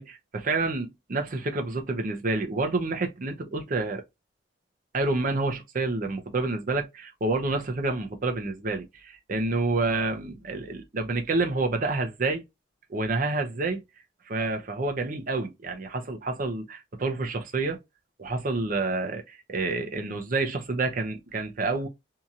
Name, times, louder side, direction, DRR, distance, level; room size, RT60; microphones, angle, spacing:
voice 1, 0.0-4.0 4.9-12.4 12.9-13.8 14.3-17.8 18.2-21.9, right 3 dB, 50° right, 0.6 m, -28 dB
2.8 x 2.7 x 2.3 m
head